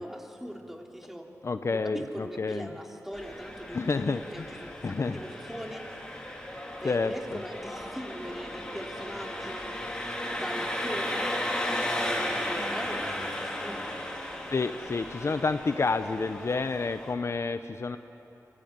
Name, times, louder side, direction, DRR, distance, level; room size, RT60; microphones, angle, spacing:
voice 1, 0.0-1.3 1.7-5.9 6.8-9.8 10.3-11.3 11.6-11.9 12.4-14.0, equal, 5° right, 1 dB, 3.0 m, -40 dB
voice 2, 1.4-2.7 3.7-4.5 4.8-5.2 6.8-7.4 14.5-18.0, left 4 dB, 50° left, 10 dB, 0.7 m, -29 dB
Engine, 3.1-17.1, left 1 dB, 15° left, 3.6 m, -35 dB
24.5 x 17.5 x 8.9 m, 2.9 s
cardioid pair, 60°, 6 cm